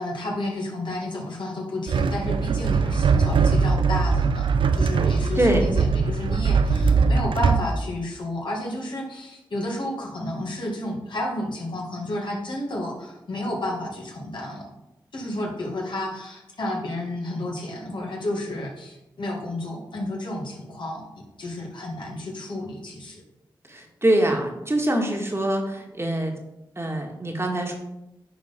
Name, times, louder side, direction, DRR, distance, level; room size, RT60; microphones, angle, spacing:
voice 1, 0.0-14.7 15.1-23.2, left 1 dB, 70° left, -1 dB, 2.1 m, -31 dB
sound 1, 1.9-7.7, right 5 dB, 75° right, 0.5 m, -21 dB
voice 2, 23.7-26.4 26.8-27.7, right 1 dB, 30° right, 1 dB, 1.7 m, -24 dB
9.9 x 3.8 x 4.4 m, 0.90 s
cardioid pair, 40°, 9 cm